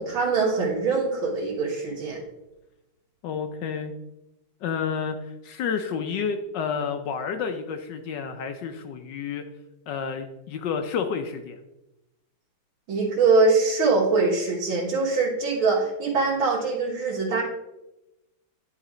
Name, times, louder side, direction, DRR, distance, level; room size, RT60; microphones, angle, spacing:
voice 1, 0.0-2.2 12.9-17.4, right 4 dB, 75° right, -5 dB, 2.2 m, -23 dB
voice 2, 3.2-3.9 4.6-5.2 5.4-9.4 9.9-11.6, left 6 dB, 70° left, 7 dB, 1.2 m, -30 dB
10.0 x 4.1 x 4.9 m, 0.95 s
omnidirectional pair, 2.2 m